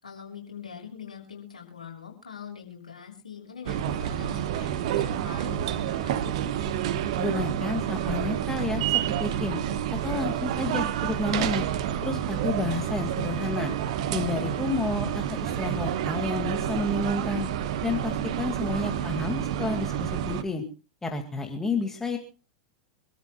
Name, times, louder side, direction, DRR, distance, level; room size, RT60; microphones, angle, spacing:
voice 1, 0.0-6.3 18.8-19.3, left 7 dB, 75° left, 2 dB, 6.1 m, -43 dB
sound 1, 3.7-20.4, right 10 dB, 55° right, 1.2 m, -29 dB
voice 2, 7.2-9.6 10.0-11.7 12.0-13.7 14.1-17.5 17.8-20.6 21.0-22.2, left 3 dB, 10° left, 4 dB, 2.2 m, -30 dB
26.0 x 13.5 x 2.3 m, 0.35 s
figure-of-eight pair, 90°, 4 cm